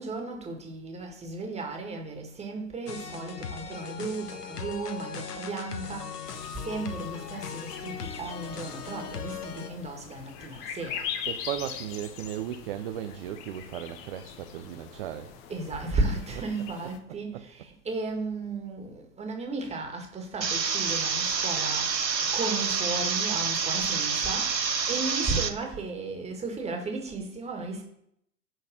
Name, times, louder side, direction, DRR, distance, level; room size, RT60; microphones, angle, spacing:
voice 1, 0.0-11.0 11.3-11.5 15.5-21.9 22.3-27.8, right 3 dB, 15° right, 1.8 m, -34 dB
sound 1, 2.9-9.7, left 6 dB, 65° left, 1.3 m, -39 dB
sound 2, 6.3-17.0, left 8 dB, 25° left, 0.8 m, -41 dB
voice 2, 11.3-15.3 16.3-16.5 16.8-17.5, right 11 dB, 35° right, 0.5 m, -36 dB
sound 3, 20.4-25.5, right 5 dB, 90° right, 1.0 m, -28 dB
9.2 x 4.0 x 6.3 m
figure-of-eight pair, 105°, 49 cm